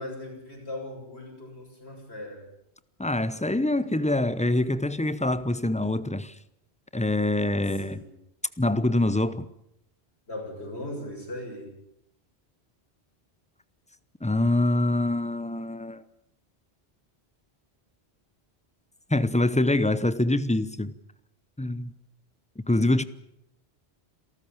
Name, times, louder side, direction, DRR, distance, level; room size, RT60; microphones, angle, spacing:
voice 1, 0.0-2.4 7.8-8.1 10.3-11.7, left 1 dB, 75° left, 7.4 m, -38 dB
voice 2, 3.0-6.3 6.9-8.0 8.6-9.5 14.2-16.0 19.1-20.9 21.6-21.9 22.7-23.0, left 1 dB, 10° left, 0.7 m, -25 dB
27.5 x 13.5 x 8.8 m
omnidirectional pair, 1.1 m